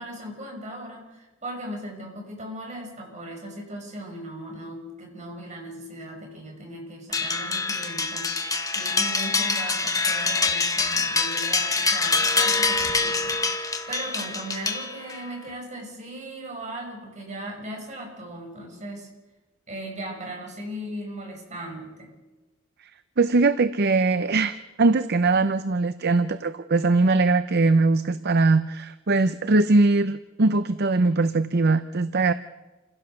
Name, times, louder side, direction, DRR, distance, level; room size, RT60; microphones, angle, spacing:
voice 1, 0.0-19.1 19.7-22.1, right 1 dB, 35° right, 1 dB, 6.3 m, -38 dB
sound 1, 7.1-15.3, left 3 dB, 15° left, 1.5 m, -25 dB
voice 2, 23.2-32.3, right 3 dB, 55° right, 12 dB, 0.7 m, -21 dB
28.5 x 16.0 x 6.9 m, 1.1 s
head